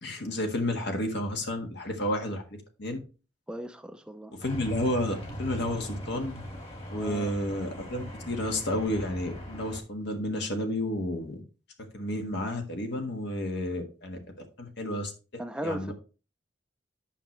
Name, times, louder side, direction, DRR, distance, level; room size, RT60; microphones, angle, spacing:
voice 1, 0.0-2.4 2.8-3.0 4.4-6.4 6.9-11.4 11.9-15.1 15.6-15.9, left 1 dB, 65° left, 1.5 m, -31 dB
voice 2, 3.5-4.3 6.9-7.3 15.4-15.9, right 1 dB, 5° right, 0.5 m, -37 dB
sound 1, 4.4-9.8, equal, 35° left, 2.0 m, -39 dB
9.0 x 5.9 x 3.1 m
head